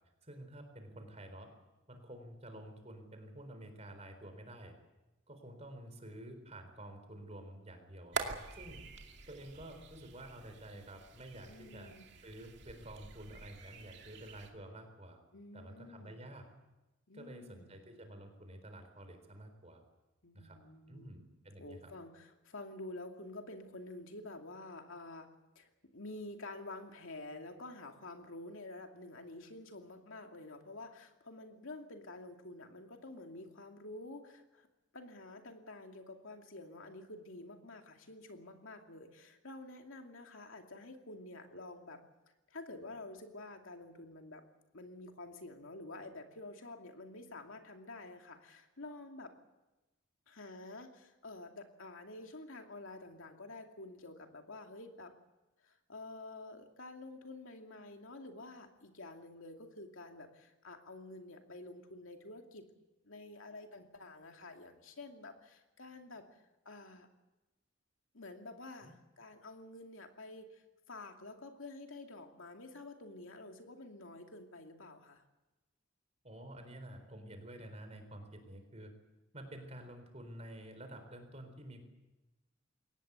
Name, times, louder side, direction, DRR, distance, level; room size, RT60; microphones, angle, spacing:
voice 1, 0.2-1.5 1.9-4.7 5.3-8.2 8.5-8.8 9.3-11.9 12.2-15.2 15.5-16.5 17.1-19.8 20.3-20.6 20.9-21.9 68.8-68.9 76.2-78.9 79.3-81.8, right 1 dB, 30° right, 7 dB, 4.1 m, -50 dB
sound 1, 8.1-14.5, right 4 dB, 55° right, 2.4 m, -46 dB
voice 2, 11.5-12.1 15.3-16.2 17.1-17.8 20.2-21.1 21.6-25.3 25.6-34.7 34.9-42.0 42.5-44.4 44.7-49.3 50.3-55.1 55.6-62.7 63.0-66.3 66.6-67.1 68.1-75.2, left 2 dB, 80° left, 4 dB, 2.6 m, -49 dB
22.5 x 18.5 x 8.2 m, 1.0 s
head